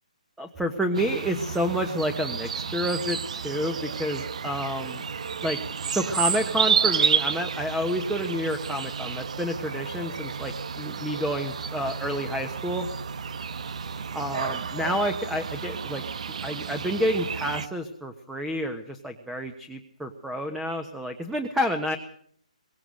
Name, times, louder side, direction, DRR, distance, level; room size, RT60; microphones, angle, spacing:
voice 1, 0.4-5.0 5.4-5.6 5.9-12.9 14.1-16.0 16.4-22.0, equal, 5° right, 8 dB, 1.2 m, -29 dB
sound 1, 0.9-17.7, right 6 dB, 60° right, 1.1 m, -30 dB
23.0 x 22.0 x 6.5 m, 0.63 s
hypercardioid pair, 165°, 4 cm